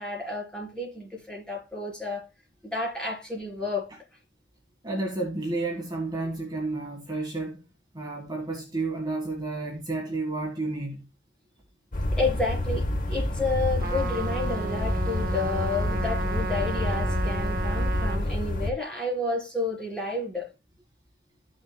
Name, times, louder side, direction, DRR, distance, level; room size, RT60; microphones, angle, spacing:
voice 1, 0.0-2.3 2.6-3.9 12.1-20.5, left 2 dB, 5° left, 4.0 m, -31 dB
voice 2, 4.8-7.6 7.9-11.0, right 2 dB, 25° right, 1.6 m, -31 dB
sound 1, 11.9-18.7, left 1 dB, 50° left, 0.8 m, -28 dB
Trumpet, 13.8-18.2, right 3 dB, 55° right, 0.7 m, -34 dB
14.0 x 6.4 x 2.2 m
head